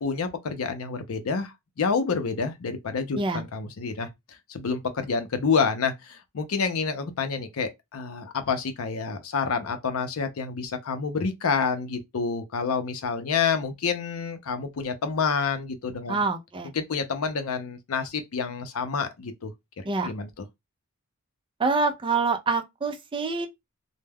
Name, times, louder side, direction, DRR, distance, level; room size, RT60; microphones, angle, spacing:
voice 1, 0.0-4.1 4.5-16.2 16.7-20.3, left 5 dB, 70° left, 0.5 m, -28 dB
voice 2, 3.1-3.5 16.1-16.7 19.8-20.1 21.6-23.5, right 4 dB, 25° right, 0.4 m, -26 dB
2.2 x 2.1 x 3.3 m
head